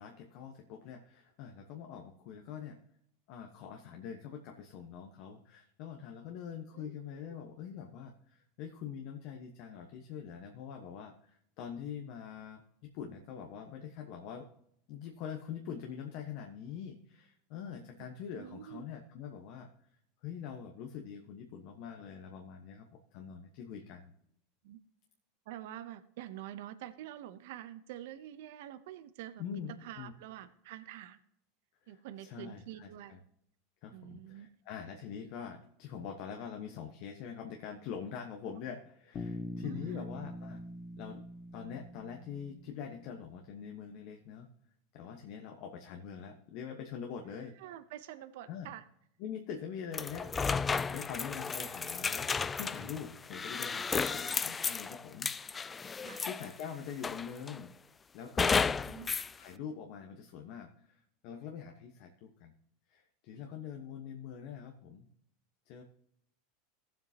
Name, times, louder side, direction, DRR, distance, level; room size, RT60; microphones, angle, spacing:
voice 1, 0.0-2.8 3.3-12.6 12.9-14.5 14.9-19.7 20.2-24.1 29.4-29.7 30.0-30.1 31.9-33.2 33.8-40.6 41.0-41.2 41.5-44.5 44.9-47.6 48.5-48.7 49.2-55.3 55.8-57.7 58.1-62.5 62.9-65.1 65.7-65.8, left 7 dB, 60° left, 4 dB, 1.2 m, -44 dB
voice 2, 6.7-7.4 18.4-18.9 24.6-24.8 25.5-31.2 31.9-33.2 33.9-34.5 39.6-40.1 47.3-48.8 53.9-54.4 56.0-56.3 58.9-59.1 63.3-63.4, right 12 dB, 70° right, 11 dB, 0.7 m, -47 dB
Bass guitar, 39.1-43.2, left 1 dB, 35° left, 1.8 m, -43 dB
sound 1, 49.9-56.6 57.0-57.6 58.4-59.3, left 5 dB, 20° left, 0.4 m, -33 dB
16.5 x 7.7 x 2.9 m, 0.72 s
hypercardioid pair, 105°, 0 cm